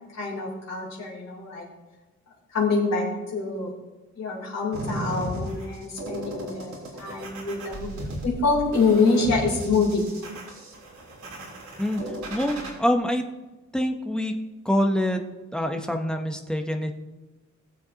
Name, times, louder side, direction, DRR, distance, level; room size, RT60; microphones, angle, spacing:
voice 1, 0.1-1.6 2.5-3.7 4.1-7.9 8.2-10.0, left 4 dB, 60° left, -5 dB, 3.4 m, -25 dB
sound 1, 4.7-12.7, right 1 dB, 70° right, 3.3 m, -35 dB
voice 2, 12.3-13.2 13.7-14.3 14.6-15.2 15.5-16.9, equal, 5° left, 4 dB, 0.8 m, -25 dB
19.0 x 7.5 x 2.8 m, 1.2 s
wide cardioid pair, 180°, 29 cm